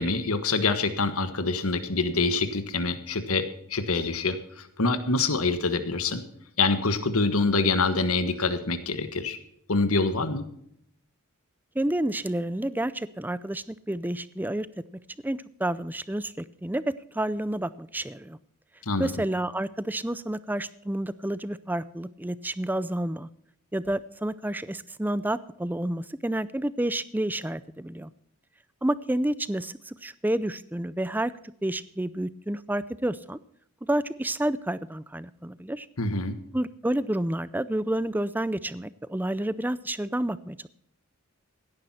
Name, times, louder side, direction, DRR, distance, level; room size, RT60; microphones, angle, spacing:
voice 1, 0.0-3.4 3.7-6.2 6.6-9.4 9.7-10.4 18.8-19.1 36.0-36.4, left 3 dB, 75° left, 11 dB, 1.5 m, -25 dB
voice 2, 11.7-14.7 15.2-16.8 17.1-18.4 19.0-23.3 23.7-28.1 28.8-31.3 31.6-33.4 33.9-35.9 36.5-40.7, right 1 dB, 10° right, 17 dB, 0.5 m, -29 dB
17.0 x 10.5 x 4.3 m, 0.71 s
head